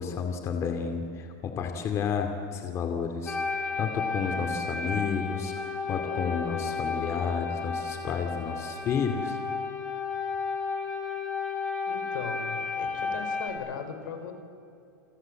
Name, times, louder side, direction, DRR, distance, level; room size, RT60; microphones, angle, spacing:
voice 1, 0.0-9.4, left 6 dB, 25° left, 5 dB, 2.5 m, -31 dB
sound 1, 3.3-13.5, left 4 dB, 10° left, 4.4 m, -33 dB
voice 2, 11.9-14.3, left 7 dB, 80° left, 6 dB, 5.1 m, -38 dB
29.5 x 24.0 x 7.7 m, 2.6 s
supercardioid pair, 160°, 10 cm